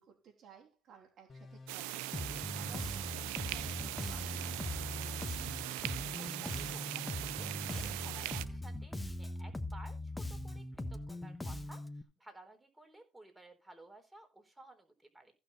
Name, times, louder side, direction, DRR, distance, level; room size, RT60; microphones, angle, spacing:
voice 1, 0.0-5.4, right 7 dB, 60° right, 3.2 m, -58 dB
sound 1, 1.3-8.6, left 3 dB, 30° left, 1.8 m, -53 dB
sound 2, 1.7-8.4, right 17 dB, 85° right, 0.5 m, -40 dB
Bass guitar, 2.1-12.0, left 1 dB, 10° left, 1.3 m, -41 dB
voice 2, 6.2-10.6 10.9-11.8 12.2-15.3, right 2 dB, 10° right, 3.9 m, -56 dB
15.5 x 6.3 x 4.2 m
supercardioid pair, 70°, 0 cm